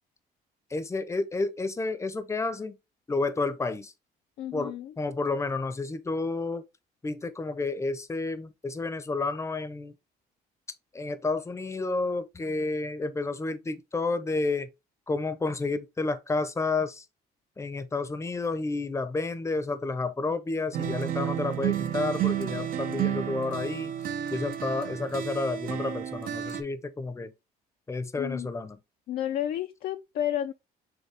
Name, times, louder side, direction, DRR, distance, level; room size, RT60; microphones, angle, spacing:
voice 1, 0.7-2.7 3.1-3.9 4.5-6.6 7.0-9.9 10.9-14.7 15.1-17.0 17.6-23.9 24.3-27.3 27.9-28.8, left 3 dB, 15° left, 0.7 m, -30 dB
voice 2, 4.4-4.9 28.2-28.5 29.1-30.5, left 11 dB, 60° left, 0.4 m, -31 dB
sound 1, 20.7-26.6, right 10 dB, 55° right, 0.7 m, -31 dB
6.5 x 2.2 x 3.3 m
cardioid pair, 110°, 17 cm